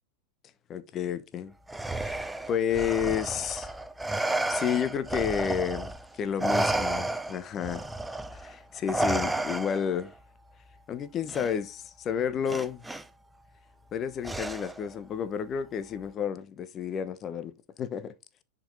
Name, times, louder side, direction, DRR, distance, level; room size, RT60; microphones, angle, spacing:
voice 1, 0.7-1.5 2.0-3.7 4.0-7.9 8.3-10.1 10.9-12.8 13.9-17.5 17.8-18.1, left 8 dB, 30° left, 1.0 m, -31 dB
Respiratory sounds, 1.7-6.0 6.4-10.0 11.3-11.5 12.5-13.0 14.2-14.9, right 2 dB, 5° right, 0.6 m, -31 dB
10.0 x 5.4 x 4.0 m
figure-of-eight pair, 90°, 0 cm